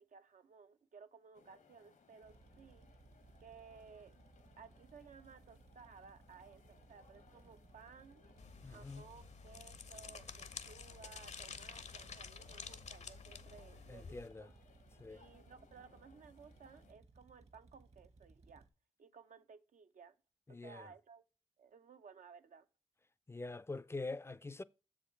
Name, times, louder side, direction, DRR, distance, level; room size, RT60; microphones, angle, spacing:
voice 1, 0.0-2.9 3.4-4.1 4.6-8.2 8.7-14.5 15.1-18.7 19.0-20.2 20.5-21.2 21.6-22.7, right 6 dB, 80° right, 0.7 m, -58 dB
sound 1, 1.3-16.9, left 5 dB, 85° left, 1.3 m, -67 dB
sound 2, 2.2-18.7, right 3 dB, 55° right, 1.1 m, -63 dB
sound 3, 8.4-14.3, left 5 dB, 60° left, 0.6 m, -50 dB
voice 2, 8.6-9.0 13.9-14.5 15.0-15.2 20.5-20.8 23.3-24.6, left 3 dB, 20° left, 0.4 m, -45 dB
7.1 x 4.8 x 4.4 m
wide cardioid pair, 80°, 13 cm